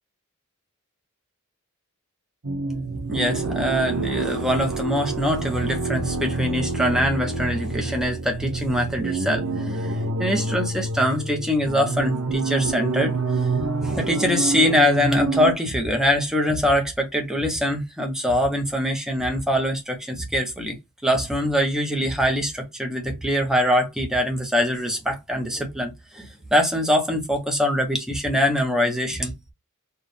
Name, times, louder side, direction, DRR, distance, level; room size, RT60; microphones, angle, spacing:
sound 1, 2.4-15.5, right 3 dB, 80° right, 1.0 m, -27 dB
voice 1, 2.9-13.1 13.8-20.8 21.0-29.3, equal, 5° right, 1.0 m, -23 dB
4.5 x 2.5 x 3.4 m
head